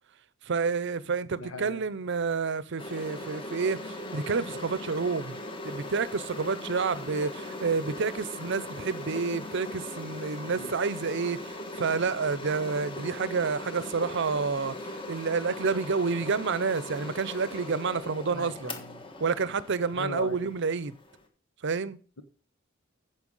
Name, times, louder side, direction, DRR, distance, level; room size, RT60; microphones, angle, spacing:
voice 1, 0.4-5.4 5.6-18.7 19.2-21.0 21.6-22.0, right 5 dB, 60° right, 0.6 m, -29 dB
voice 2, 1.4-1.8 10.5-10.7 18.2-19.0 20.0-20.5, left 3 dB, 75° left, 1.2 m, -39 dB
sound 1, 2.8-21.3, left 1 dB, 25° left, 1.5 m, -40 dB
9.9 x 6.9 x 5.4 m
head